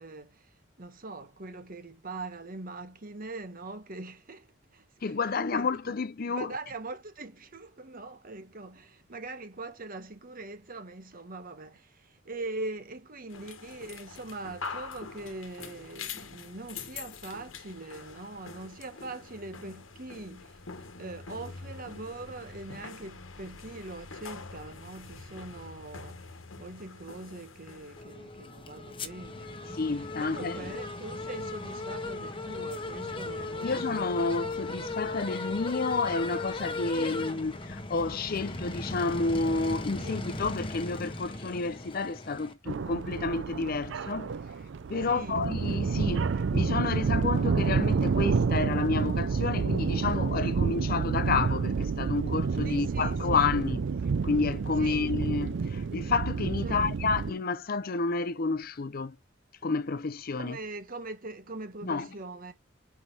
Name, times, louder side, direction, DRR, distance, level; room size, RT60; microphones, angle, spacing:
voice 1, 0.0-4.5 4.7-5.1 5.5-5.7 6.2-20.6 21.0-34.5 36.9-37.3 40.0-40.3 45.0-45.5 52.6-53.6 54.8-55.1 56.6-57.1 60.3-62.5, right 2 dB, 45° right, 1.1 m, -42 dB
voice 2, 5.0-6.5 29.7-30.6 33.6-44.3 44.9-46.2 46.5-53.8 54.2-59.2 59.6-60.6 61.8-62.1, left 4 dB, 50° left, 0.6 m, -30 dB
sound 1, 13.3-28.0, left 4 dB, 85° left, 1.2 m, -44 dB
sound 2, 28.0-42.5, left 2 dB, 25° left, 1.1 m, -37 dB
sound 3, 42.7-57.3, right 5 dB, 65° right, 0.4 m, -29 dB
6.2 x 4.8 x 5.5 m
head